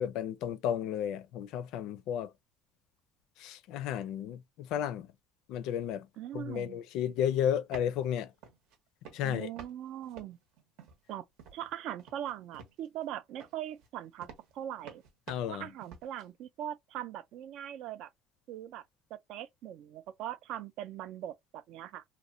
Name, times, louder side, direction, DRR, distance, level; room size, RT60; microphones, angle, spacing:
voice 1, 0.0-2.3 3.4-5.1 5.5-6.1 6.3-8.3 9.1-9.5 15.3-15.7, left 9 dB, 65° left, 0.4 m, -33 dB
voice 2, 6.2-6.8 9.2-10.4 11.1-11.2 11.5-14.3 14.5-15.0 15.5-18.1 18.5-18.8 19.1-22.0, right 11 dB, 60° right, 0.4 m, -41 dB
sound 1, 7.5-8.1 8.4-8.8 9.0-9.8 10.0-11.1 11.4-11.7 12.0-13.0 13.4-16.3, right 6 dB, 75° right, 0.8 m, -50 dB
2.9 x 2.1 x 2.4 m
cardioid pair, 165°, 0 cm